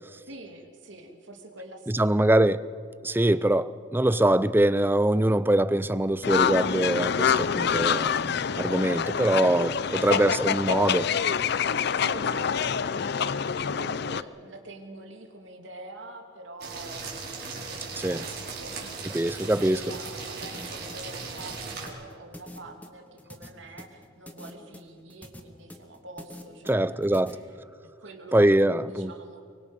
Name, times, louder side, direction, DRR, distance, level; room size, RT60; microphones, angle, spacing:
voice 1, 0.3-2.3 9.9-10.1 12.0-27.5 27.8-29.4, right 1 dB, 70° right, 4 dB, 2.8 m, -45 dB
voice 2, 1.9-2.6 3.0-8.3 8.6-11.1 18.0-18.2 19.1-19.8 26.7-27.4 28.3-29.1, right 1 dB, 10° right, 16 dB, 0.5 m, -23 dB
sound 1, 6.2-14.2, left 7 dB, 55° left, 0.5 m, -26 dB
sound 2, 16.6-21.9, right 4 dB, 55° right, 4.7 m, -38 dB
sound 3, 19.9-27.3, left 1 dB, 10° left, 1.6 m, -45 dB
24.0 x 24.0 x 5.4 m, 2.2 s
head